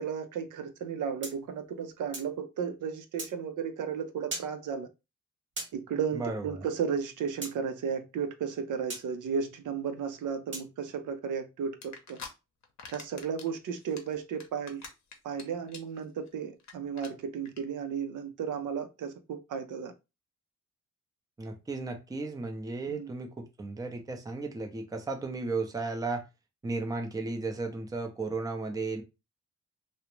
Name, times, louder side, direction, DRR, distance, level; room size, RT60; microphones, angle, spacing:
voice 1, 0.0-4.9 5.7-12.2 12.9-14.8 15.2-19.9 22.9-23.1, right 7 dB, 75° right, 0.5 m, -34 dB
sound 1, 1.2-2.3 3.2-3.3 4.3-4.5 5.6-5.7 7.4-7.5 8.9-9.0 10.5-10.7, right 2 dB, 35° right, 1.1 m, -38 dB
voice 2, 6.1-6.6 21.4-26.3 26.6-29.0, right 3 dB, 10° right, 0.5 m, -34 dB
sound 2, 11.8-12.3 12.6-13.5 13.8-15.4 15.7-16.0 16.3-16.4 16.6-16.7 17.0-17.1 17.5-17.6, left 5 dB, 60° left, 0.7 m, -44 dB
2.4 x 2.0 x 2.9 m
cardioid pair, 95°, 31 cm